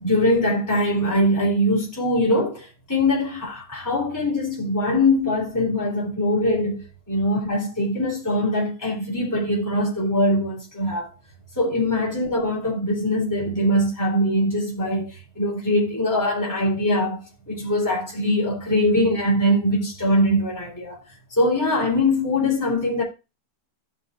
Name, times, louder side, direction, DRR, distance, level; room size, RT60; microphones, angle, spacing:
voice 1, 0.0-11.1 11.6-21.0 21.3-23.0, left 1 dB, 10° left, 3.5 m, -22 dB
15.5 x 5.6 x 2.5 m
omnidirectional pair, 1.8 m